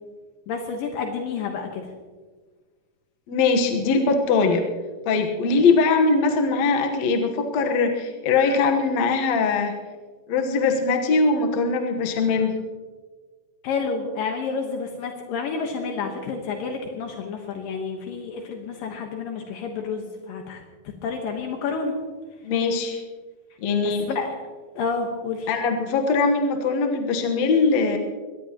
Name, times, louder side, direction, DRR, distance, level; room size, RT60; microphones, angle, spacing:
voice 1, 0.5-1.9 13.6-20.6 21.0-21.9 23.8-24.3 24.8-25.5, left 5 dB, 75° left, 2 dB, 2.9 m, -29 dB
voice 2, 3.3-4.7 5.1-9.7 10.3-12.5 22.4-23.0 23.6-24.1 25.5-28.0, left 4 dB, 60° left, 3 dB, 2.2 m, -21 dB
23.0 x 18.5 x 3.0 m, 1.4 s
omnidirectional pair, 4.1 m